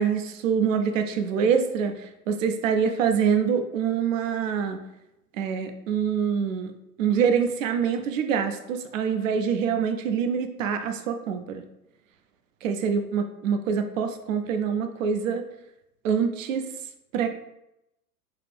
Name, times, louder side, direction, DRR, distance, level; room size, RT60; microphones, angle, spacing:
voice 1, 0.0-4.8 5.4-6.7 7.0-11.6 12.6-15.4 16.0-16.6 17.1-17.4, right 7 dB, 55° right, 7 dB, 0.7 m, -25 dB
5.7 x 2.4 x 3.4 m, 0.87 s
figure-of-eight pair, 100°, 49 cm